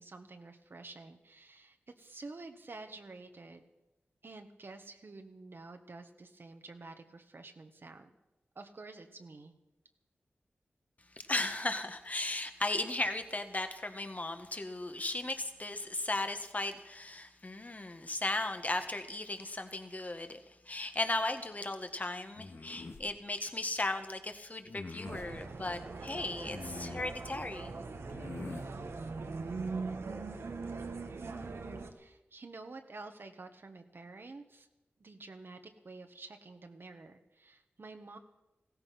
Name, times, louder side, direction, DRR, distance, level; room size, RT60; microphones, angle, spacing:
voice 1, 0.0-3.7 4.2-8.1 8.5-9.5 31.9-34.7 35.0-38.2, right 3 dB, 60° right, 5 dB, 1.4 m, -49 dB
voice 2, 11.2-20.4 20.7-27.7, left 2 dB, 35° left, 7 dB, 1.7 m, -36 dB
sound 1, 22.4-23.1 24.7-25.3 26.4-27.2 28.1-28.7, left 3 dB, 65° left, 1.9 m, -44 dB
sound 2, 25.0-31.9, right 4 dB, 80° right, 1.4 m, -41 dB
16.0 x 14.0 x 6.0 m, 0.98 s
cardioid pair, 50°, 4 cm